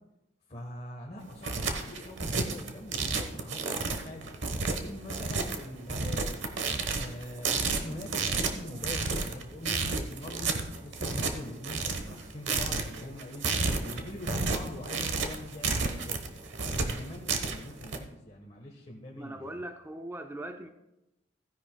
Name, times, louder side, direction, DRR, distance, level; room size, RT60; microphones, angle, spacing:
voice 1, 0.5-4.3 4.7-6.4 6.9-10.5 10.8-13.5 13.8-16.3 16.8-19.6, left 1 dB, 30° left, -2 dB, 1.2 m, -43 dB
sound 1, 1.2-18.0, right 4 dB, 60° right, 1.1 m, -31 dB
voice 2, 19.2-20.7, right 1 dB, 10° right, 6 dB, 0.4 m, -40 dB
16.0 x 10.5 x 2.2 m, 0.96 s
head